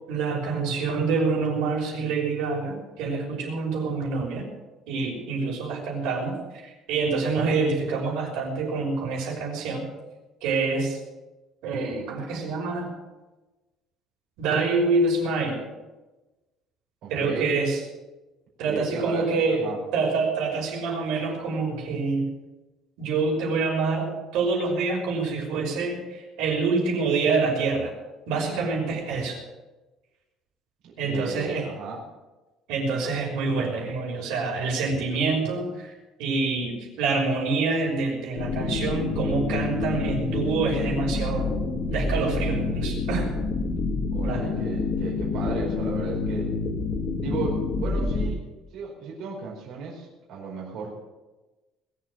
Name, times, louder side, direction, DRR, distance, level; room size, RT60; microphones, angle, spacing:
voice 1, 0.1-4.4 4.9-6.3 6.6-9.9 10.4-11.0 11.6-12.9 14.4-15.6 17.1-17.8 18.6-22.3 23.0-27.9 28.3-29.4 31.0-31.7 32.7-35.9 36.2-41.6 41.9-43.3 44.2-44.5, right 4 dB, 80° right, -1 dB, 5.8 m, -26 dB
voice 2, 17.0-17.5 18.6-19.8 30.8-32.0 44.1-46.5 47.2-48.4 48.7-50.9, right 4 dB, 55° right, -4 dB, 4.8 m, -35 dB
sound 1, 38.4-48.3, left 3 dB, 40° left, 1.9 m, -27 dB
21.0 x 7.7 x 7.6 m, 1.1 s
cardioid pair, 175°, 0 cm